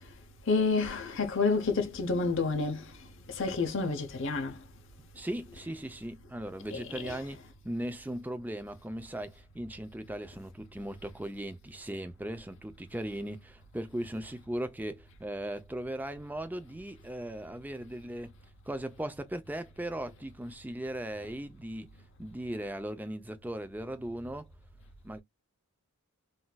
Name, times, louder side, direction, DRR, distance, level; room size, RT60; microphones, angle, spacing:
voice 1, 0.5-3.0 3.3-4.6 6.7-7.3, left 4 dB, 60° left, 0.7 m, -29 dB
voice 2, 5.1-7.4 7.6-18.3 18.7-21.9 22.2-24.5 25.0-25.2, right 1 dB, 10° right, 0.4 m, -38 dB
3.9 x 2.5 x 2.2 m
head